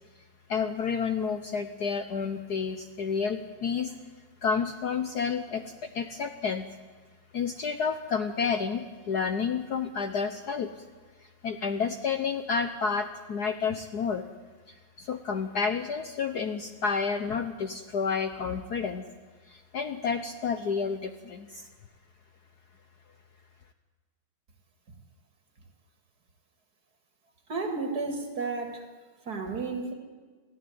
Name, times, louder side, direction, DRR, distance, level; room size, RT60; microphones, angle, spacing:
voice 1, 0.5-4.0 4.4-6.7 7.3-10.7 11.4-14.3 15.0-19.0 19.5-21.7, left 5 dB, 60° left, 8 dB, 1.2 m, -30 dB
voice 2, 27.5-28.9 29.3-29.9, right 3 dB, 45° right, 6 dB, 2.7 m, -32 dB
21.5 x 15.0 x 9.5 m, 1.4 s
omnidirectional pair, 2.4 m